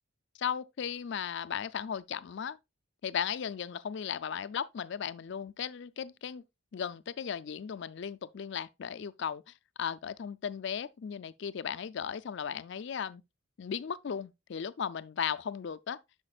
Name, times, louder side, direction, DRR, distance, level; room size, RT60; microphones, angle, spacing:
voice 1, 0.4-2.6 3.0-6.4 6.7-9.4 9.8-13.2 13.6-16.0, left 7 dB, 55° left, 0.4 m, -36 dB
11.0 x 5.2 x 2.3 m
head